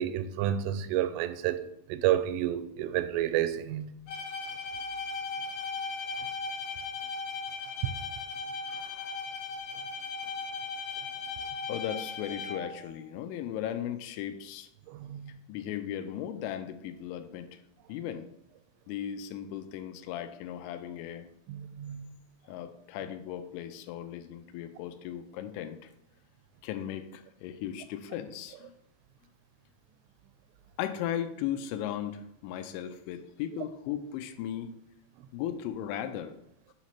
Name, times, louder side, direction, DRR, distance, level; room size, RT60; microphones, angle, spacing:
voice 1, 0.0-3.9 7.8-7.9 14.9-15.3 21.5-22.1, right 11 dB, 90° right, 3.1 m, -30 dB
Bowed string instrument, 4.1-12.8, left 4 dB, 65° left, 2.8 m, -37 dB
voice 2, 8.7-9.2 11.7-14.7 15.5-17.5 17.9-18.3 18.9-21.3 22.5-25.9 26.6-28.8 30.8-34.7 35.3-36.3, left 10 dB, 85° left, 3.0 m, -37 dB
7.8 x 3.1 x 5.7 m
omnidirectional pair, 5.5 m